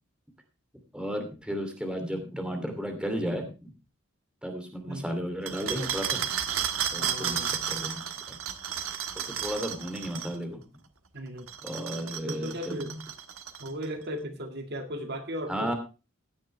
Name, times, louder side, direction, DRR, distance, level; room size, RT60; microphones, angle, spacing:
voice 1, 0.9-3.5 4.4-6.2 6.9-8.0 8.3-8.4 9.1-10.6 11.6-12.8 15.5-15.7, equal, 5° right, 5 dB, 2.7 m, -33 dB
sound 1, 5.5-10.3 11.4-13.9, right 9 dB, 85° right, 1.4 m, -33 dB
voice 2, 7.0-7.5 11.1-11.5 12.3-13.1 13.6-15.7, equal, 50° right, 5 dB, 1.9 m, -36 dB
16.5 x 10.5 x 3.3 m, 0.31 s
head